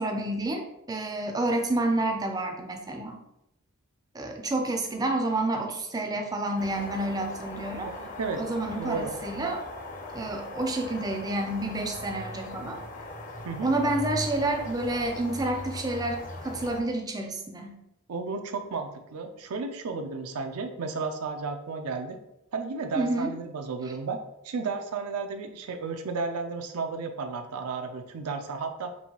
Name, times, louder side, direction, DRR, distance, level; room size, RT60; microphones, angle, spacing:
voice 1, 0.0-3.2 4.1-7.9 8.4-9.6 10.1-12.8 13.6-17.8 23.0-23.3, right 2 dB, 15° right, 4 dB, 0.4 m, -29 dB
sound 1, 6.6-16.8, left 1 dB, 35° left, 0.6 m, -39 dB
voice 2, 7.8-8.4 8.8-9.1 13.4-13.7 18.1-22.2 22.5-24.2 24.4-28.9, right 4 dB, 90° right, 6 dB, 0.4 m, -33 dB
5.4 x 2.6 x 2.9 m, 0.86 s
head